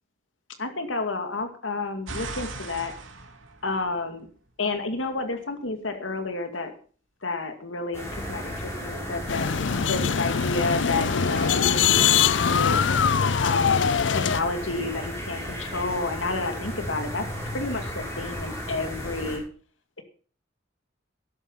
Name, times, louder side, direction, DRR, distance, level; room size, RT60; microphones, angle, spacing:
voice 1, 0.6-2.9 3.6-4.3 4.6-6.7 7.2-9.5 9.9-12.8 13.4-19.4, left 3 dB, 85° left, 7 dB, 2.3 m, -30 dB
sound 1, 2.1-4.5 9.8-11.9, right 3 dB, 85° right, 2.6 m, -41 dB
sound 2, 7.9-19.4, equal, 15° left, 5.9 m, -35 dB
sound 3, 9.3-14.4, left 7 dB, 65° left, 0.5 m, -22 dB
12.5 x 12.0 x 5.6 m, 0.42 s
head